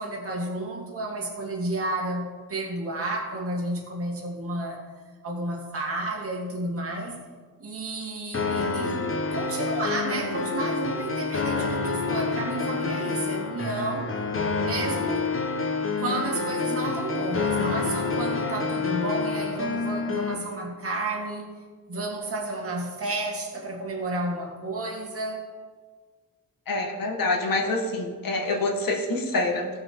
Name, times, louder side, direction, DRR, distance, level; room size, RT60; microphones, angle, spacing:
voice 1, 0.0-4.8 5.2-7.3 7.6-9.0 9.3-14.2 14.6-15.3 16.0-21.5 21.9-25.5, right 2 dB, 40° right, 2.1 m, -31 dB
sound 1, 8.3-20.4, left 4 dB, 35° left, 1.1 m, -28 dB
voice 2, 26.7-29.7, left 2 dB, 70° left, 1.8 m, -26 dB
16.0 x 6.1 x 4.7 m
wide cardioid pair, 165°, 36 cm